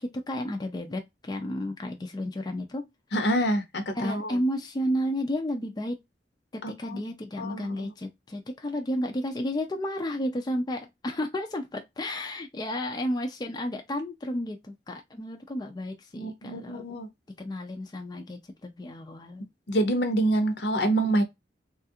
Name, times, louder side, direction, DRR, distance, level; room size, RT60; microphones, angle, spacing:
voice 1, 0.0-2.9 3.9-6.0 6.5-16.8 17.4-19.5, left 1 dB, 25° left, 0.4 m, -32 dB
voice 2, 3.1-4.4 6.6-7.0 7.4-7.9 16.1-17.1 19.7-21.2, right 1 dB, 65° left, 0.8 m, -26 dB
3.3 x 2.4 x 2.6 m
head